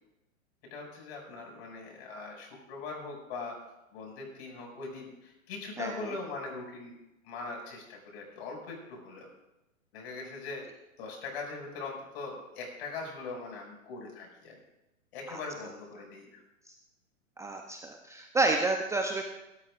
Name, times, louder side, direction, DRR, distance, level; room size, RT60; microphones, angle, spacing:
voice 1, 0.7-3.5 3.9-7.0 7.2-9.3 9.9-10.6 11.0-14.5 15.1-16.4, left 3 dB, 50° left, 0 dB, 6.5 m, -41 dB
voice 2, 17.4-19.2, right 3 dB, 5° right, 3 dB, 0.8 m, -29 dB
24.0 x 13.0 x 2.5 m, 0.96 s
hypercardioid pair, 115°, 40 cm